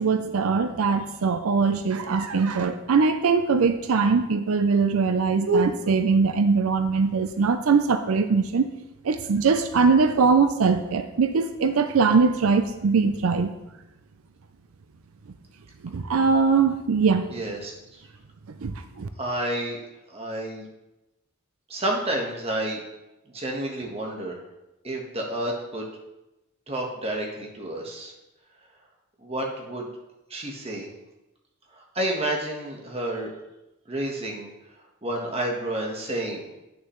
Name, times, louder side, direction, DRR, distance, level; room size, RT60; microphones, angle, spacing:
voice 1, 0.0-8.7 9.1-13.5 15.9-17.3 18.6-19.1, right 5 dB, 85° right, 8 dB, 0.5 m, -21 dB
voice 2, 17.3-18.0 19.2-19.8 20.1-20.7 21.7-22.8 23.3-24.4 24.8-25.9 26.7-28.1 29.2-29.9 30.3-30.9 31.7-33.3 33.9-34.5 35.0-36.5, right 1 dB, 30° right, 0 dB, 1.3 m, -30 dB
8.7 x 6.6 x 3.1 m, 0.94 s
head